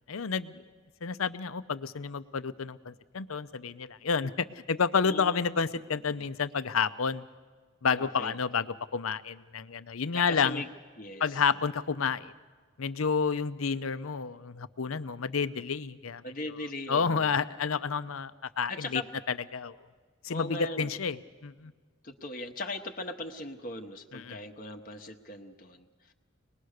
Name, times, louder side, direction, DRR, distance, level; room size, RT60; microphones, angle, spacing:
voice 1, 0.1-0.6 1.0-7.2 7.8-10.6 11.2-12.3 12.8-16.2 16.9-19.0 19.5-19.8 20.2-21.7 24.1-24.4, left 5 dB, 85° left, 14 dB, 0.7 m, -30 dB
voice 2, 5.1-5.4 8.0-8.4 10.1-10.7 11.0-11.4 16.2-17.4 18.7-19.1 20.3-21.0 22.0-26.1, left 2 dB, 40° left, 4 dB, 0.9 m, -39 dB
24.0 x 20.0 x 6.6 m, 1.5 s
head